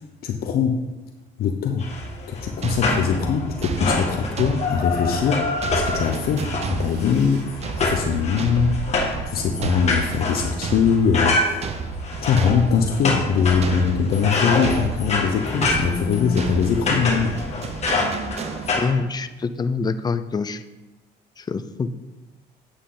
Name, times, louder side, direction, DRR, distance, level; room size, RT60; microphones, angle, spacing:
voice 1, 0.2-0.9 1.4-1.9 2.3-8.7 9.3-11.7 12.2-17.4, left 6 dB, 65° left, 3 dB, 0.8 m, -22 dB
sound 1, 1.8-18.9, left 3 dB, 40° left, 1.9 m, -26 dB
sound 2, 2.6-19.1, right 5 dB, 40° right, 0.8 m, -33 dB
sound 3, 6.0-10.9, right 9 dB, 85° right, 0.5 m, -37 dB
voice 2, 18.8-20.6 21.4-21.9, left 4 dB, 25° left, 11 dB, 0.5 m, -25 dB
8.4 x 8.1 x 3.9 m, 1.1 s
cardioid pair, 110°, 17 cm